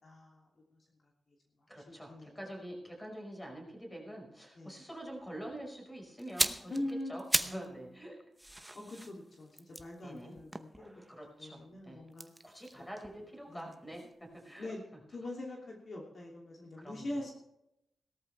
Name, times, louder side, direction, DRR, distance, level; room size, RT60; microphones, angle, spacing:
voice 1, 0.0-0.8 1.9-2.4 4.5-4.8 6.7-7.8 8.7-10.9 11.4-12.3 13.5-13.7 14.6-14.8 15.1-17.3, left 1 dB, 50° left, -1 dB, 2.9 m, -43 dB
voice 2, 1.7-8.3 10.0-10.4 11.1-12.0 12.4-14.7 16.8-17.3, right 1 dB, 10° left, 0 dB, 5.2 m, -46 dB
sound 1, 6.2-7.7 8.0-11.3 12.1-14.1 14.4-14.6, right 1 dB, 5° right, 0.9 m, -37 dB
17.5 x 13.5 x 3.4 m, 0.83 s
wide cardioid pair, 110°, 0 cm